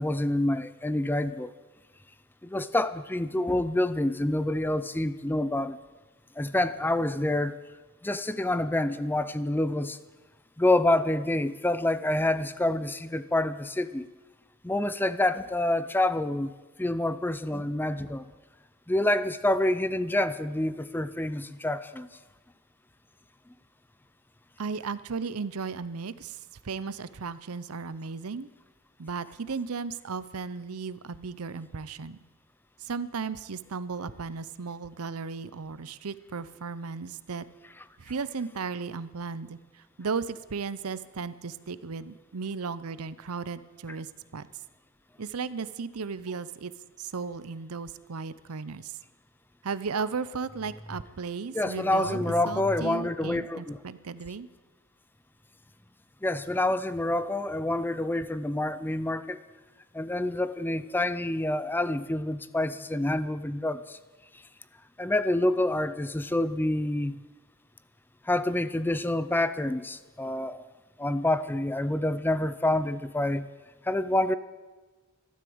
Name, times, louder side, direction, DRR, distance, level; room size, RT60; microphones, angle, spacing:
voice 1, 0.0-1.5 2.4-5.8 6.4-7.6 8.0-10.0 10.6-14.1 14.6-16.5 16.8-18.3 18.9-22.1 51.5-53.8 56.2-59.4 59.9-64.0 65.0-67.2 68.2-70.6 71.0-73.5 73.8-74.4, left 1 dB, 10° left, 14 dB, 0.4 m, -27 dB
voice 2, 24.6-26.4 26.6-28.5 29.0-32.2 32.8-37.4 38.0-39.6 40.0-44.5 45.2-46.7 47.0-49.0 49.6-54.5, right 5 dB, 85° right, 16 dB, 0.7 m, -35 dB
13.5 x 12.5 x 7.9 m, 1.3 s
head